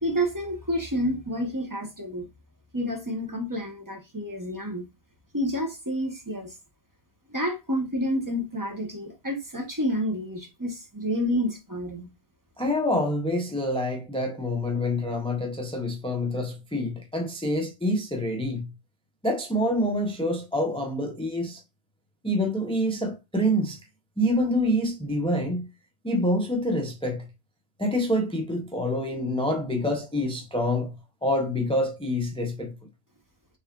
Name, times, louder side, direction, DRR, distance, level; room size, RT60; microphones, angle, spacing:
voice 1, 0.0-2.3 2.7-4.8 5.3-6.5 7.3-12.1, equal, 20° right, 0.9 m, -29 dB
voice 2, 12.6-18.7 19.2-21.6 22.2-23.8 24.2-25.7 26.0-27.3 27.8-30.9 31.2-32.8, left 1 dB, 10° left, 0.3 m, -26 dB
5.9 x 3.3 x 2.3 m
omnidirectional pair, 1.1 m